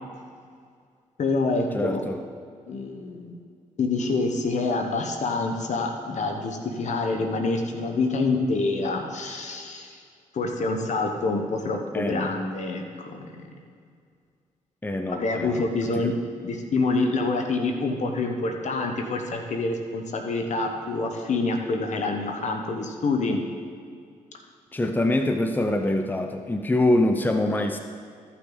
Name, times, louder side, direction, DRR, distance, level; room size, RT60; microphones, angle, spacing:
voice 1, 1.2-2.0 2.7-3.4 3.8-10.0 10.3-13.4 15.1-16.1 16.4-23.4, left 3 dB, 60° left, 4 dB, 1.2 m, -26 dB
voice 2, 1.7-2.2 11.9-12.3 14.8-16.1 24.7-27.8, left 1 dB, 15° left, 6 dB, 0.7 m, -25 dB
13.5 x 5.9 x 4.0 m, 2.2 s
supercardioid pair, 55°, 14 cm